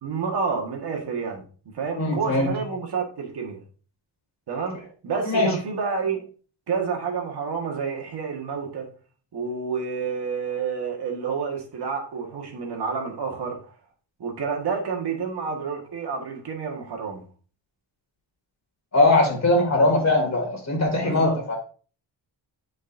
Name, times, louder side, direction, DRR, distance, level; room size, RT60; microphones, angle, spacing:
voice 1, 0.0-1.4 1.7-3.6 4.5-6.2 6.7-8.9 9.3-13.7 14.2-17.2 21.0-21.4, right 5 dB, 65° right, 1.7 m, -29 dB
voice 2, 2.0-2.5 5.3-5.5 18.9-21.6, left 2 dB, 40° left, 2.6 m, -20 dB
8.2 x 5.4 x 2.6 m
wide cardioid pair, 140°, 43 cm